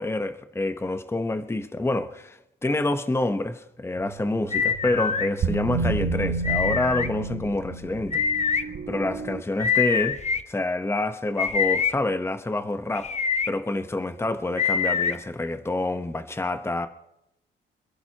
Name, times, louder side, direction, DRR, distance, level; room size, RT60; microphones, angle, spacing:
voice 1, 0.0-8.2 8.9-10.2 10.5-13.1 13.5-16.9, left 2 dB, 10° left, 1.1 m, -27 dB
sound 1, 4.0-9.4, right 4 dB, 55° right, 1.2 m, -31 dB
sound 2, 4.5-5.3 6.4-7.1 8.1-8.6 9.6-10.4 11.4-11.9 12.9-13.5 14.6-15.1, left 6 dB, 35° left, 1.0 m, -24 dB
27.5 x 11.0 x 3.0 m
cardioid pair, 90°, 20 cm